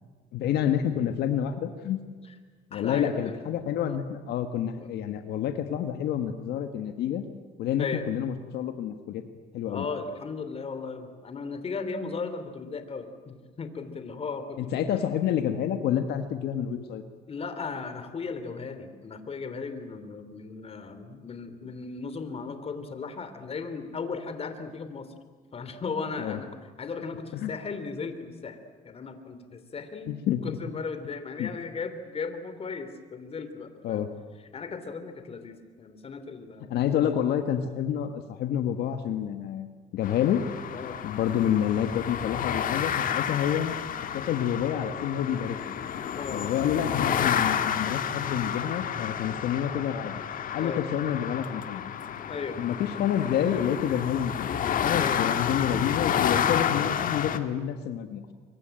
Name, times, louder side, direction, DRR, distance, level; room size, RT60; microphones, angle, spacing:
voice 1, 0.3-2.0 2.7-7.2 7.6-9.2 9.5-9.9 14.6-17.0 26.2-26.4 27.3-27.5 30.1-30.6 31.4-31.5 33.8-34.1 36.7-39.7 39.9-40.4 41.0-43.7 44.1-45.7 46.3-50.1 50.5-51.9 52.6-54.6 54.8-58.3, left 9 dB, 75° left, 7 dB, 1.6 m, -28 dB
voice 2, 2.7-3.4 3.8-4.0 4.8-4.9 7.8-8.0 9.7-14.8 17.3-25.1 25.5-26.5 26.8-28.6 28.8-34.1 34.5-36.8 40.7-41.0 46.1-46.4 50.6-50.8 52.3-52.6 54.9-55.2, left 4 dB, 35° left, 9 dB, 3.0 m, -36 dB
sound 1, 40.0-57.4, left 8 dB, 55° left, 1.7 m, -30 dB
25.0 x 23.0 x 9.0 m, 1.5 s
cardioid pair, 110°, 17 cm